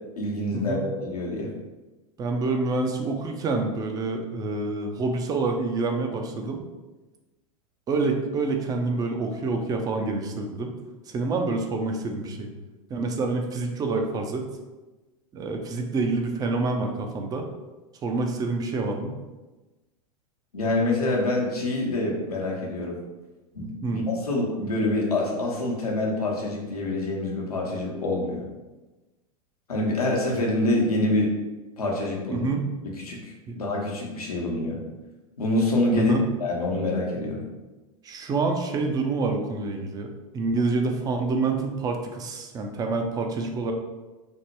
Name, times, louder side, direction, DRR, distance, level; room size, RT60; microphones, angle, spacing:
voice 1, 0.2-1.5 20.5-23.0 23.5-28.4 29.7-31.3 31.8-32.5 33.0-34.8 35.4-36.1 36.4-37.4, left 2 dB, 85° left, -2 dB, 0.8 m, -26 dB
voice 2, 2.2-6.6 7.9-10.7 11.1-12.5 12.9-14.5 15.3-17.5 18.0-19.2 23.8-24.0 32.3-32.7 33.5-33.6 36.0-36.2 38.0-40.1 40.3-43.7, right 3 dB, 20° right, 4 dB, 0.4 m, -27 dB
3.3 x 2.1 x 2.9 m, 1.2 s
hypercardioid pair, 95°, 19 cm